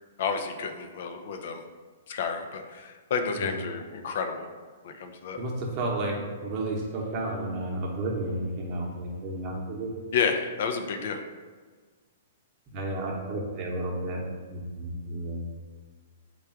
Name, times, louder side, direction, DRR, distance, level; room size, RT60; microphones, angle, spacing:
voice 1, 0.2-1.6 2.1-4.5 4.8-5.4 10.1-11.2, left 6 dB, 60° left, 5 dB, 0.4 m, -30 dB
voice 2, 5.4-10.1 12.7-15.4, right 1 dB, 40° right, -1 dB, 0.8 m, -32 dB
3.3 x 2.4 x 4.3 m, 1.5 s
hypercardioid pair, 120°, 0 cm